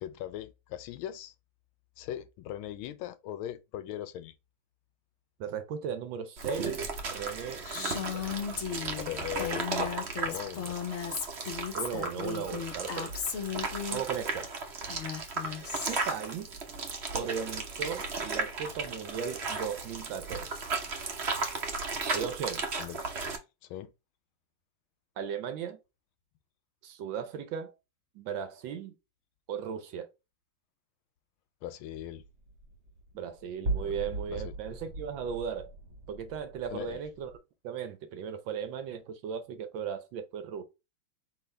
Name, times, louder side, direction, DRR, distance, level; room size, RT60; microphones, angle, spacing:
voice 1, 0.0-1.3 2.0-4.3 8.9-9.9 10.2-10.8 22.8-23.0 23.6-23.9 31.6-32.2 34.3-34.5 36.7-37.0, left 12 dB, 80° left, 1.4 m, -39 dB
voice 2, 5.4-6.7 7.0-8.3 11.7-13.1 13.9-14.5 15.9-16.6 17.1-20.6 22.1-22.6 25.2-25.8 26.8-27.7 28.1-29.0 29.5-30.1 33.1-35.7 36.1-37.3 37.6-40.6, right 7 dB, 70° right, 1.3 m, -37 dB
sound 1, 6.4-23.4, right 4 dB, 55° right, 0.7 m, -35 dB
Female speech woman speaking, 7.7-14.0 14.8-16.2, left 7 dB, 55° left, 0.8 m, -36 dB
sound 2, 31.9-37.4, right 2 dB, 40° right, 1.2 m, -39 dB
4.7 x 3.4 x 3.2 m
omnidirectional pair, 2.4 m